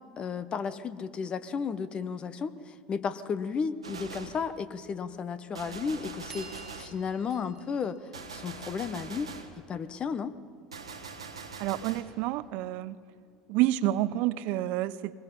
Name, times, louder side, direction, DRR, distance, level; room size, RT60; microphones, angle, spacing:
voice 1, 0.2-10.3, left 6 dB, 35° left, 13 dB, 1.0 m, -34 dB
Gunshot gunfire, 3.8-4.5 5.5-7.0 8.1-9.6 10.7-12.1, right 5 dB, 85° right, 1.4 m, -43 dB
sound 1, 6.3-8.9, right 3 dB, 15° right, 1.6 m, -51 dB
voice 2, 11.6-13.0 13.5-15.1, right 15 dB, 55° right, 15 dB, 0.7 m, -28 dB
24.0 x 20.5 x 5.6 m, 2.1 s
figure-of-eight pair, 75°, 3 cm